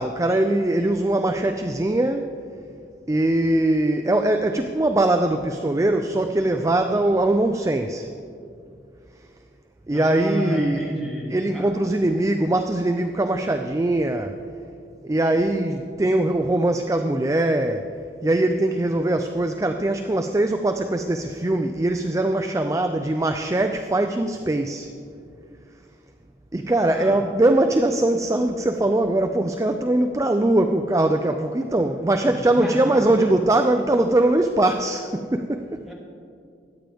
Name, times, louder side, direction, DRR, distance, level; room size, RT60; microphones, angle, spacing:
voice 1, 0.0-2.3 3.1-8.1 9.9-10.8 11.3-14.4 15.0-17.9 18.2-24.9 26.5-35.8, right 1 dB, 20° right, 6 dB, 0.4 m, -21 dB
voice 2, 9.9-11.7 26.9-27.2 32.2-33.3 35.9-36.0, equal, ahead, -5 dB, 2.6 m, -31 dB
23.0 x 9.0 x 3.5 m, 2.4 s
head